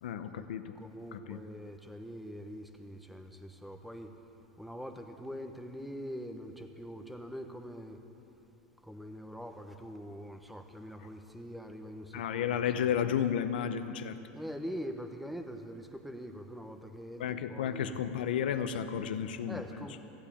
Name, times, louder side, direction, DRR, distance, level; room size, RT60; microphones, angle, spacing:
voice 1, 0.0-0.7 1.1-1.4 12.1-14.2 17.2-19.9, left 8 dB, 90° left, 10 dB, 0.7 m, -32 dB
voice 2, 0.7-4.1 4.6-8.0 8.8-12.5 12.8-12.9 14.3-18.0 19.5-20.0, equal, ahead, 5 dB, 1.1 m, -43 dB
15.0 x 8.6 x 8.6 m, 2.9 s
supercardioid pair, 115°, 5 cm